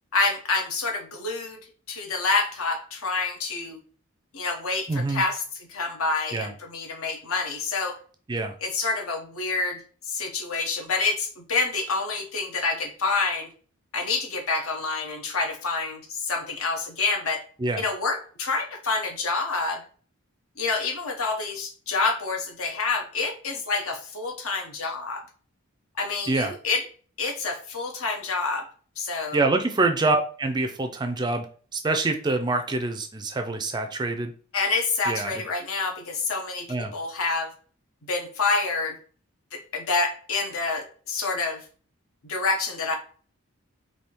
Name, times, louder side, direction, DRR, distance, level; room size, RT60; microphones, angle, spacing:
voice 1, 0.1-1.6 1.9-3.8 4.3-5.4 5.7-8.0 8.6-9.8 10.1-13.5 13.9-17.4 17.8-19.8 20.6-25.2 26.0-26.8 27.2-28.7 29.0-29.4 34.5-37.5 38.0-39.0 39.5-41.6 42.2-43.0, left 3 dB, 70° left, 3 dB, 1.0 m, -27 dB
voice 2, 4.9-5.2 6.3-6.5 8.3-8.6 17.6-17.8 26.3-26.5 29.3-31.5 31.7-34.3 35.1-35.4 36.7-36.9, right 3 dB, 20° right, 6 dB, 0.3 m, -25 dB
3.4 x 2.8 x 4.3 m, 0.42 s
head